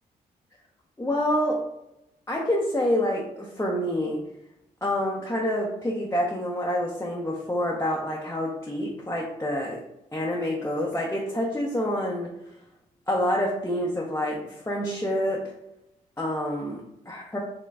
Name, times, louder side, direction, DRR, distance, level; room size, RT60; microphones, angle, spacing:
voice 1, 1.0-1.6 2.3-4.2 4.8-9.8 10.1-12.3 13.1-15.5 16.2-17.4, equal, 15° left, -3 dB, 0.9 m, -27 dB
4.4 x 3.0 x 2.4 m, 0.84 s
supercardioid pair, 50°, 18 cm